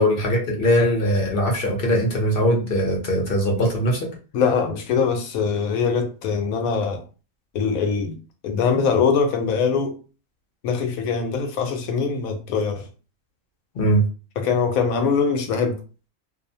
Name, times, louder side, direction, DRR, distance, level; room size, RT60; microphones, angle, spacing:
voice 1, 0.0-4.1 13.7-14.0, equal, 50° left, 0.8 m, -21 dB
voice 2, 4.3-7.0 7.5-8.2 8.4-10.0 10.6-12.9 14.4-15.8, left 5 dB, 85° left, 1.0 m, -22 dB
2.6 x 2.0 x 2.6 m
omnidirectional pair, 1.4 m